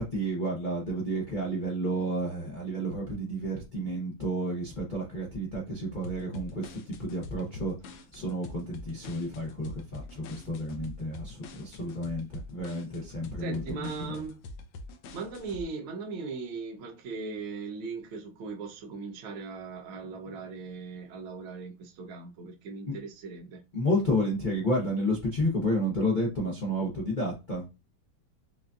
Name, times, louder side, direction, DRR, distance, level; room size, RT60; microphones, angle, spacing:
voice 1, 0.0-7.7 8.1-14.2 22.9-23.0 23.7-27.7, equal, 70° left, 0.4 m, -31 dB
sound 1, 6.0-15.6, left 3 dB, 85° left, 1.4 m, -45 dB
voice 2, 13.4-14.4 15.1-23.6, right 4 dB, 85° right, 1.6 m, -38 dB
6.0 x 2.5 x 2.3 m
omnidirectional pair, 2.2 m